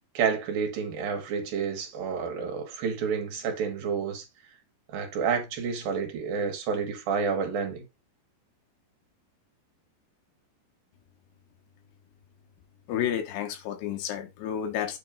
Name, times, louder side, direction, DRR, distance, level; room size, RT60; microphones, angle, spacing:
voice 1, 0.1-4.2 4.9-7.8, right 6 dB, 65° right, 3.2 m, -29 dB
voice 2, 12.9-15.0, left 9 dB, 85° left, 3.4 m, -31 dB
8.6 x 3.1 x 5.1 m
omnidirectional pair, 4.6 m